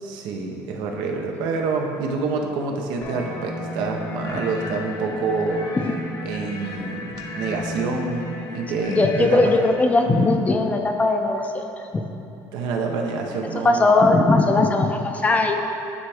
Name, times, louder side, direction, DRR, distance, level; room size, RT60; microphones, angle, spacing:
voice 1, 0.0-5.7 6.2-9.5 12.5-13.8, right 4 dB, 75° right, 2 dB, 0.7 m, -27 dB
sound 1, 3.0-9.7, left 2 dB, 60° left, 0.9 m, -34 dB
voice 2, 8.9-11.7 11.9-12.1 13.6-15.6, left 2 dB, 20° left, 4 dB, 0.4 m, -19 dB
9.4 x 3.4 x 3.5 m, 2.7 s
cardioid pair, 135°, 7 cm